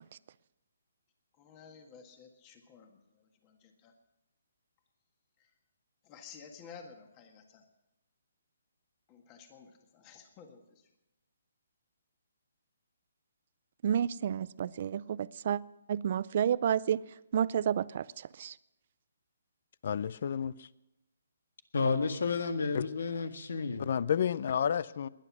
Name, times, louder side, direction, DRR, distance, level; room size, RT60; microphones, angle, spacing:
voice 1, 1.3-3.9 5.4-5.5 6.0-7.6 9.1-10.9, left 6 dB, 20° left, 5 dB, 1.7 m, -53 dB
voice 2, 13.8-15.6 15.9-17.0 17.3-18.5, right 9 dB, 45° right, 19 dB, 0.4 m, -30 dB
voice 3, 19.8-20.7 22.7-22.8 23.8-25.1, left 8 dB, 50° left, 20 dB, 0.5 m, -31 dB
voice 4, 21.7-23.9, left 4 dB, 70° left, 9 dB, 1.7 m, -31 dB
20.5 x 9.9 x 6.1 m, 0.94 s
hypercardioid pair, 165°, 0 cm